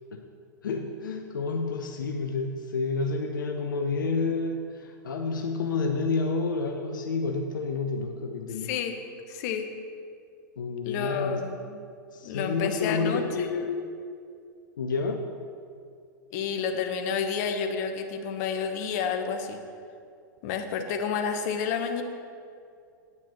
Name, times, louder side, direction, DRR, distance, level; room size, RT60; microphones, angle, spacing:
voice 1, 0.6-8.7 10.6-11.4 12.1-13.8 14.8-15.2, left 4 dB, 80° left, 3 dB, 0.8 m, -29 dB
voice 2, 8.6-8.9 9.3-9.7 10.8-11.8 12.2-13.5 16.3-19.6 20.4-22.0, left 6 dB, 55° left, 6 dB, 1.1 m, -30 dB
9.2 x 5.9 x 6.9 m, 2.3 s
hypercardioid pair, 100°, 10 cm